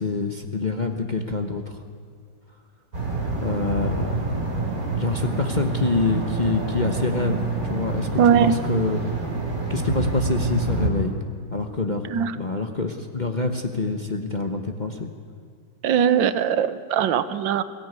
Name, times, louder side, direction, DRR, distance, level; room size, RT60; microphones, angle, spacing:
voice 1, 0.0-1.8 3.4-4.2 4.9-9.0 9.7-12.1 12.3-15.1, left 3 dB, 30° left, 4 dB, 0.9 m, -26 dB
sound 1, 2.9-10.9, right 3 dB, 45° right, 3.8 m, -27 dB
voice 2, 8.2-8.5 12.1-12.3 15.8-17.6, right 8 dB, 75° right, 13 dB, 1.5 m, -20 dB
22.5 x 15.0 x 9.6 m, 2.1 s
omnidirectional pair, 2.1 m